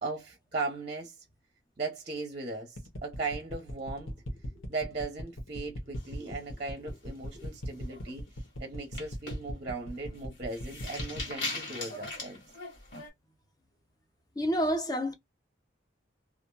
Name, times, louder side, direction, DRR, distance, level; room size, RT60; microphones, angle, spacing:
voice 1, 0.0-1.1 1.8-8.2 8.6-12.4, right 3 dB, 35° right, 0.7 m, -38 dB
sound 1, 2.8-11.3, equal, 90° left, 0.9 m, -39 dB
sound 2, 5.9-6.8 7.2-7.5 7.8-8.1 8.8-13.1, left 2 dB, 55° left, 1.5 m, -40 dB
voice 2, 14.4-15.1, equal, 20° left, 0.6 m, -28 dB
2.8 x 2.5 x 2.2 m
head